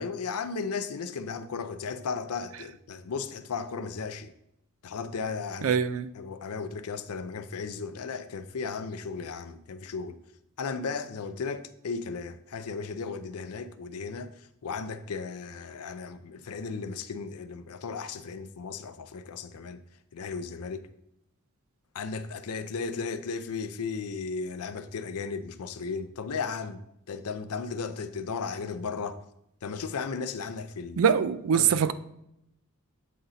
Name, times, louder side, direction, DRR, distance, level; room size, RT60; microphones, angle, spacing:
voice 1, 0.0-4.3 4.8-5.8 6.1-10.2 10.6-14.3 14.6-19.8 20.1-20.8 21.9-29.2 29.6-31.0 31.5-31.7, left 5 dB, 85° left, 0.5 m, -35 dB
voice 2, 5.6-6.1 31.0-31.9, right 7 dB, 65° right, 0.4 m, -23 dB
8.4 x 3.9 x 4.1 m
head